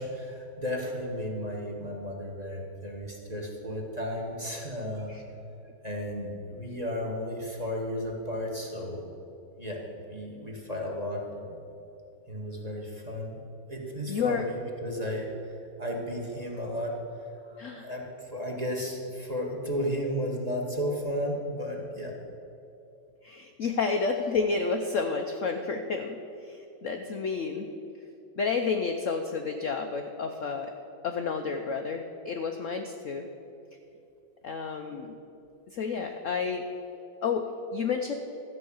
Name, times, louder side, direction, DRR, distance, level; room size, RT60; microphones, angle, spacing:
voice 1, 0.0-5.1 5.8-9.1 9.6-9.8 10.1-11.6 12.3-13.4 13.7-22.2, equal, 20° right, 0 dB, 1.4 m, -34 dB
voice 2, 14.1-14.5 17.6-17.9 23.2-27.7 28.4-30.7 31.0-33.3 34.4-35.2 35.7-36.6 37.2-37.5 37.7-38.1, left 5 dB, 75° left, 4 dB, 0.7 m, -30 dB
13.5 x 5.4 x 8.6 m, 2.8 s
omnidirectional pair, 2.1 m